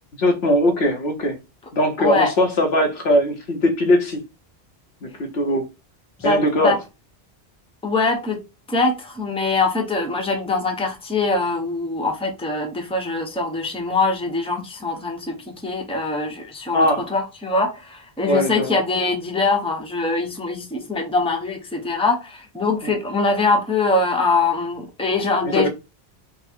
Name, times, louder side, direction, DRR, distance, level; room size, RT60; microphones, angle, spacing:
voice 1, 0.2-1.4 1.7-4.2 5.0-5.7 6.2-6.8 16.7-17.1 18.3-18.8 22.8-22.9 25.4-25.7, left 1 dB, 75° left, 1.3 m, -20 dB
voice 2, 2.0-2.3 6.2-6.8 7.8-8.4 8.7-25.7, left 3 dB, 5° left, 0.8 m, -23 dB
4.0 x 2.2 x 4.4 m
omnidirectional pair, 1.1 m